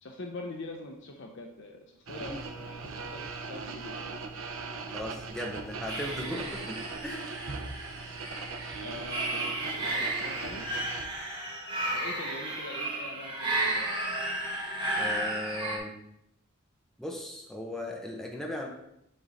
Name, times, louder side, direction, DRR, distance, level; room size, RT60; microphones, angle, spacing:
voice 1, 0.0-4.2 8.8-10.7 11.9-14.0, left 2 dB, 55° left, 2 dB, 0.7 m, -44 dB
sound 1, 2.1-11.0, right 4 dB, 75° right, 0.8 m, -39 dB
voice 2, 4.9-7.3 14.9-15.9 17.0-18.7, left 1 dB, ahead, -1 dB, 0.9 m, -37 dB
sound 2, 5.9-15.8, right 1 dB, 20° right, 1.4 m, -33 dB
10.0 x 3.8 x 4.1 m, 0.80 s
head